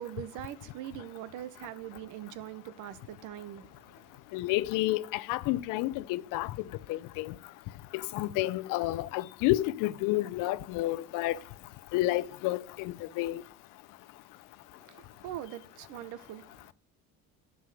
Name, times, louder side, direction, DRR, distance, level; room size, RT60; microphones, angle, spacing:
voice 1, 0.0-4.2 14.7-16.7, right 12 dB, 70° right, 1.1 m, -42 dB
voice 2, 4.3-6.5 6.9-7.3 7.9-11.4 11.9-13.4, left 17 dB, 85° left, 0.6 m, -30 dB
11.0 x 5.5 x 7.8 m
cardioid pair, 170°, 31 cm